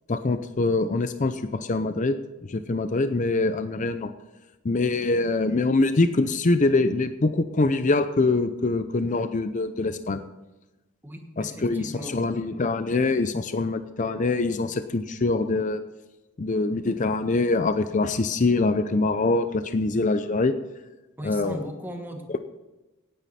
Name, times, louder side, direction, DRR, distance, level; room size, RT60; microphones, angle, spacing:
voice 1, 0.1-2.2 2.5-4.1 4.6-10.2 11.4-15.8 16.4-20.6 21.2-21.7, left 3 dB, 35° left, 10 dB, 0.5 m, -24 dB
voice 2, 11.0-12.1 21.2-22.2, equal, 10° right, 3 dB, 1.4 m, -38 dB
17.5 x 9.2 x 4.2 m, 1.1 s
head